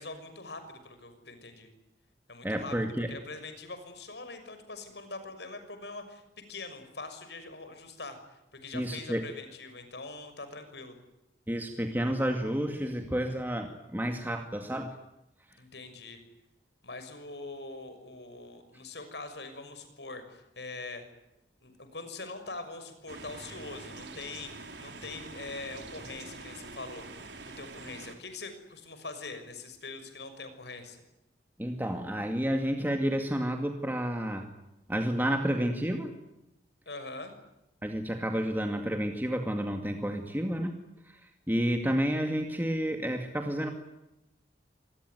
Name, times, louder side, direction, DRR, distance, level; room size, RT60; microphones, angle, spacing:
voice 1, 0.0-1.7 2.3-2.7 3.1-6.2 6.5-8.2 8.6-11.0 15.6-16.2 16.8-21.0 21.6-31.0 36.8-37.3, left 3 dB, 75° left, 9 dB, 6.4 m, -43 dB
voice 2, 2.4-3.2 8.7-9.2 11.5-15.0 31.6-34.5 34.9-36.1 37.8-40.8 41.1-43.7, equal, 10° right, 4 dB, 2.3 m, -30 dB
sound 1, 23.1-28.1, right 3 dB, 80° right, 4.0 m, -45 dB
26.5 x 21.0 x 9.5 m, 0.89 s
head